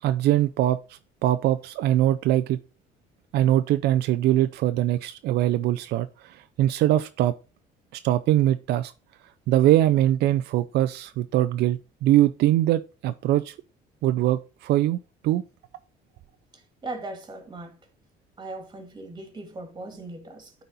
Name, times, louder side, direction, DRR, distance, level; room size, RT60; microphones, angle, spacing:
voice 1, 0.0-2.6 3.3-7.3 7.9-8.9 9.5-13.5 14.0-15.0 15.2-15.4, right 13 dB, 75° right, 0.4 m, -22 dB
voice 2, 16.5-17.8 18.4-20.5, right 2 dB, 25° right, 2.1 m, -39 dB
9.5 x 4.1 x 3.9 m
cardioid pair, 110°, 17 cm